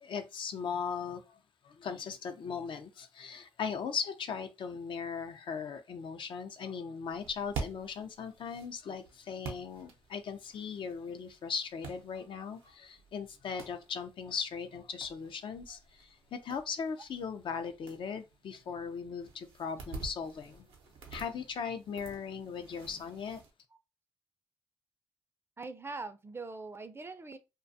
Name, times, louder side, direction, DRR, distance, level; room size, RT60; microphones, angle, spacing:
voice 1, 0.0-1.2 1.8-15.8 16.3-20.7 21.1-23.4, left 6 dB, 65° left, 0.4 m, -38 dB
sound 1, 7.1-23.5, right 4 dB, 90° right, 0.6 m, -48 dB
voice 2, 25.6-27.4, right 3 dB, 25° right, 0.4 m, -42 dB
2.4 x 2.2 x 2.6 m
supercardioid pair, 55°, 9 cm